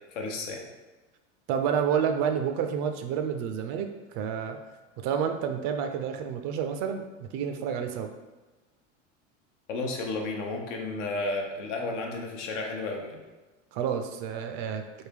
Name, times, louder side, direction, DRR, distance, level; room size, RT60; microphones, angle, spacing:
voice 1, 0.1-0.6 9.7-13.2, left 2 dB, 70° left, 1 dB, 0.8 m, -32 dB
voice 2, 1.5-3.9 4.1-4.6 5.0-8.1 13.7-14.8, right 7 dB, 50° right, 6 dB, 0.4 m, -29 dB
3.5 x 2.1 x 3.5 m, 1.2 s
hypercardioid pair, 95°, 37 cm